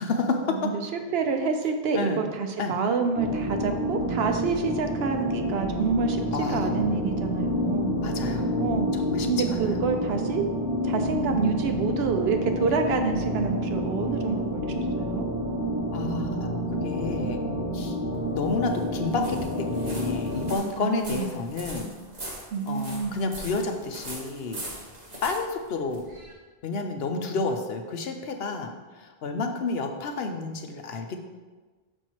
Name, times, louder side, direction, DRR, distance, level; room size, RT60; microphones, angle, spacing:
voice 1, 0.0-0.7 1.9-2.3 2.6-2.7 6.3-6.7 8.0-8.6 8.9-9.8 15.9-16.5 16.8-17.4 17.7-18.0 18.3-21.9 22.7-24.6 25.2-26.0 26.6-31.2, left 3 dB, 75° left, 5 dB, 0.9 m, -30 dB
voice 2, 0.9-6.2 6.5-7.9 8.6-8.9 9.3-10.4 10.8-15.3 20.8-21.3 22.5-23.2, right 5 dB, 80° right, 5 dB, 0.9 m, -27 dB
sound 1, 3.2-20.6, equal, 60° left, 1.2 m, -29 dB
sound 2, 18.1-26.3, right 1 dB, 45° right, 1.4 m, -42 dB
6.4 x 4.5 x 4.5 m, 1.3 s
omnidirectional pair, 1.0 m